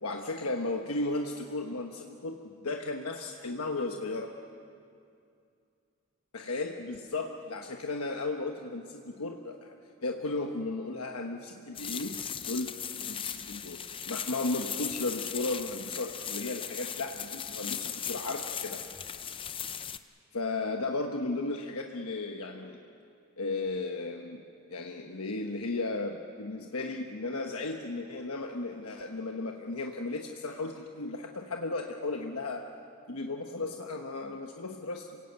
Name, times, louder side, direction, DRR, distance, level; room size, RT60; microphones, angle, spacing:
voice 1, 0.0-4.3 6.3-9.7 10.0-12.2 12.5-12.7 13.0-13.8 14.1-18.8 20.3-22.8 23.4-24.4 24.7-32.6 33.1-35.2, left 2 dB, 85° left, 2 dB, 1.2 m, -35 dB
sound 1, 11.7-20.0, left 8 dB, 25° left, 0.6 m, -38 dB
27.0 x 17.5 x 8.1 m, 2.5 s
head